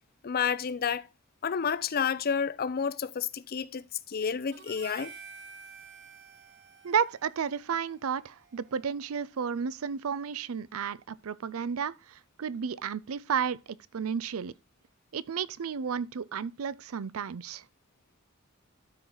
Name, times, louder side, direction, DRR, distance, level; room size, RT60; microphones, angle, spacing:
voice 1, 0.2-1.1 1.4-5.1, left 7 dB, 45° left, 0.5 m, -30 dB
Harmonica, 4.5-9.0, right 6 dB, 60° right, 1.5 m, -50 dB
voice 2, 6.8-14.5 15.1-17.6, right 7 dB, 85° right, 0.5 m, -32 dB
13.0 x 4.8 x 3.8 m
head